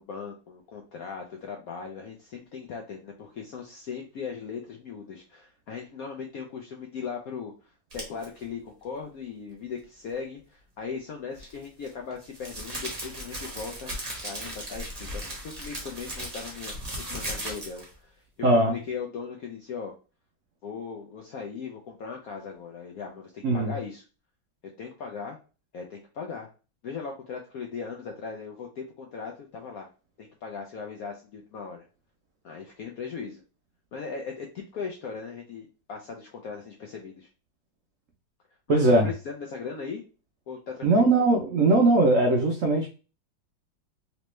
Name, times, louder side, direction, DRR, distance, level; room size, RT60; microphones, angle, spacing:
voice 1, 0.0-13.9 14.2-16.7 17.1-19.9 20.6-24.0 24.8-25.4 25.7-26.5 26.8-29.9 30.2-31.9 32.4-33.4 33.9-37.3 38.7-40.0 40.5-41.1, left 5 dB, 80° left, 1 dB, 0.8 m, -38 dB
sound 1, 7.9-8.2 11.3-17.9, right 1 dB, 30° right, 0.8 m, -37 dB
voice 2, 18.4-18.7 23.4-23.7 38.7-39.1 40.8-42.9, right 2 dB, 85° right, 1 dB, 0.6 m, -20 dB
3.2 x 3.0 x 3.1 m, 0.34 s
omnidirectional pair, 2.1 m